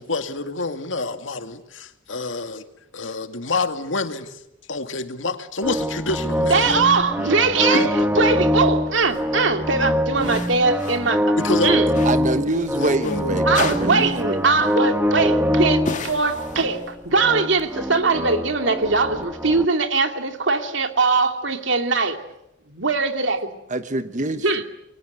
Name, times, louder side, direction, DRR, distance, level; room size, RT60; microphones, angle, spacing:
voice 1, 0.0-2.6 2.9-4.4 4.7-6.7 7.7-7.9 11.4-12.0 12.8-13.4, left 3 dB, 80° left, 2.3 m, -27 dB
sound 1, 5.6-19.7, equal, 10° right, 1.2 m, -24 dB
voice 2, 6.5-11.2 11.6-11.9 13.5-22.2 22.7-23.5 24.4-24.6, right 4 dB, 75° right, 2.6 m, -21 dB
sound 2, 9.0-9.2 10.2-11.1 11.4-13.2 13.5-14.3 14.6-14.8 15.9-17.0, left 4 dB, 40° left, 2.2 m, -34 dB
voice 3, 12.0-14.5 23.7-24.5, right 2 dB, 40° right, 1.1 m, -25 dB
29.5 x 23.0 x 8.2 m
head